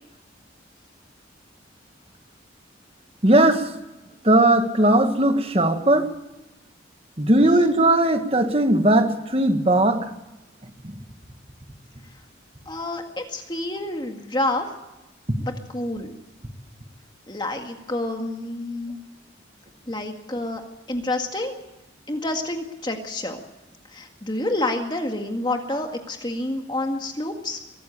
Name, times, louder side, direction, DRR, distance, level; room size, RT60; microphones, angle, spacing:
voice 1, 3.2-3.7 4.2-6.1 7.2-10.1, right 1 dB, 30° right, 7 dB, 1.7 m, -18 dB
voice 2, 12.7-14.7 15.4-16.1 17.3-19.0 19.9-20.6 20.9-21.6 22.1-23.4 23.9-27.6, left 2 dB, 25° left, 4 dB, 1.9 m, -28 dB
23.0 x 14.5 x 8.6 m, 1.0 s
head